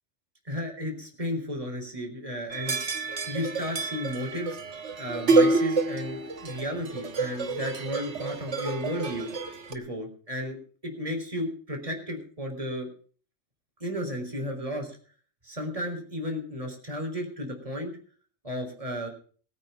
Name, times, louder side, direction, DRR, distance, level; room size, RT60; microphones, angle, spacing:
voice 1, 0.5-4.6 5.0-9.3 9.7-10.6 10.8-12.9 13.8-15.0 15.4-17.9 18.4-19.1, equal, 30° right, 3 dB, 4.1 m, -33 dB
sound 1, 2.5-9.7, right 3 dB, 70° right, 1.7 m, -28 dB
20.5 x 9.0 x 5.9 m, 0.43 s
omnidirectional pair, 1.2 m